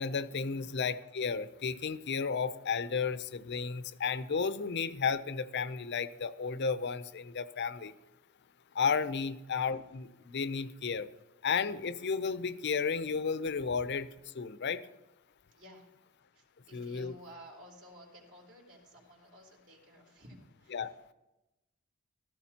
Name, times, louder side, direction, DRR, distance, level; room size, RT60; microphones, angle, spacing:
voice 1, 0.0-7.9 8.7-11.1 11.4-14.8 16.7-17.1 20.7-20.9, left 5 dB, 55° left, 0.6 m, -33 dB
voice 2, 15.5-15.9 16.3-20.9, equal, 60° right, 3.5 m, -54 dB
15.5 x 14.0 x 2.9 m
head